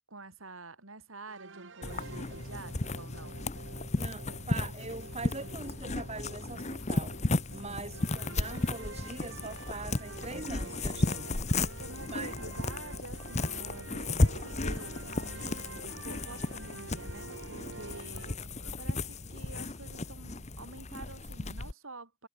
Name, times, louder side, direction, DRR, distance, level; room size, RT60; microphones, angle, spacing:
voice 1, 0.1-3.4 7.6-7.9 11.8-22.3, right 2 dB, 80° right, 5.7 m, -48 dB
sound 1, 1.3-18.4, right 3 dB, 65° right, 1.3 m, -48 dB
sound 2, 1.8-21.7, left 2 dB, 35° left, 1.1 m, -34 dB
voice 2, 4.0-7.2 7.5-11.3 12.1-12.3, right 3 dB, 30° right, 2.4 m, -42 dB
head